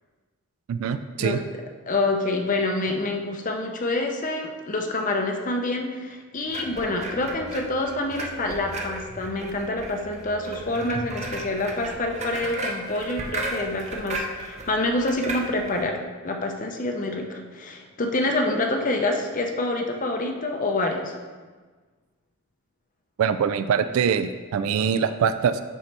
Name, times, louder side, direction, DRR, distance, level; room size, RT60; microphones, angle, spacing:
voice 1, 0.7-1.4 23.2-25.6, right 7 dB, 70° right, 11 dB, 0.3 m, -23 dB
voice 2, 1.9-21.1, left 2 dB, 35° left, 3 dB, 0.6 m, -27 dB
sound 1, 6.5-15.9, right 2 dB, 30° right, 0.7 m, -35 dB
9.9 x 4.2 x 3.3 m, 1.4 s
head